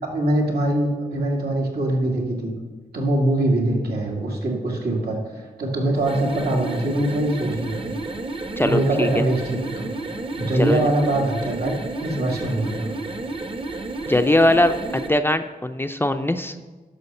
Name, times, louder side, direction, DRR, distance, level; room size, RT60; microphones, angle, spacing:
voice 1, 0.0-2.5 2.9-5.2 5.6-7.8 8.6-9.9 10.4-12.9, right 1 dB, 75° right, -1 dB, 2.2 m, -23 dB
sound 1, 6.0-15.2, right 2 dB, 35° right, 0.9 m, -31 dB
voice 2, 8.6-9.1 10.6-10.8 14.1-16.5, left 1 dB, 15° left, 7 dB, 0.5 m, -20 dB
11.5 x 6.3 x 5.5 m, 1.3 s
cardioid pair, 70°, 16 cm